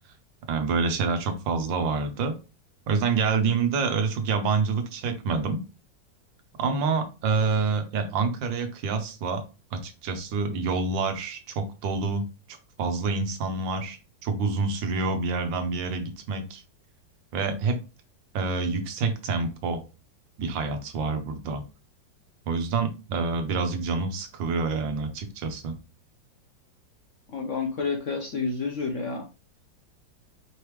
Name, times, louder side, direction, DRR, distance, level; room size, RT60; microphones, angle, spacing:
voice 1, 0.5-2.4 2.9-5.6 6.6-9.4 9.7-16.6 17.3-17.8 18.3-19.8 20.4-21.6 22.5-25.8, right 4 dB, 80° right, 7 dB, 1.5 m, -27 dB
voice 2, 27.3-29.3, left 4 dB, 60° left, 2 dB, 0.8 m, -29 dB
5.1 x 3.3 x 3.1 m, 0.31 s
omnidirectional pair, 2.0 m